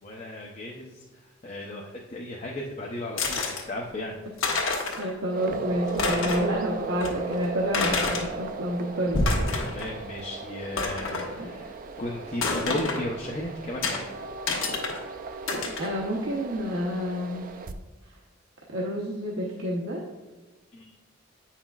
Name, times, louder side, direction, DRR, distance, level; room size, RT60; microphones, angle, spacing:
voice 1, 0.0-4.2 9.6-14.1 20.7-20.9, left 1 dB, 35° left, -2 dB, 0.6 m, -35 dB
sound 1, 3.2-3.6 4.1-4.2 4.4-5.1 5.4-5.5 5.9-6.5 7.0-7.1 7.7-8.3 9.0-9.9 10.2-10.3 10.8-11.3 12.4-13.0 13.8-14.0 14.5-15.0 15.5-15.9, left 3 dB, 80° left, 1.3 m, -27 dB
voice 2, 4.9-9.2 9.7-9.8 11.1-11.5 15.8-17.5 18.7-20.0, equal, 70° right, -3 dB, 0.9 m, -29 dB
sound 2, 5.3-17.7, right 3 dB, 45° right, 0.4 m, -37 dB
8.9 x 5.8 x 2.4 m, 1.2 s
head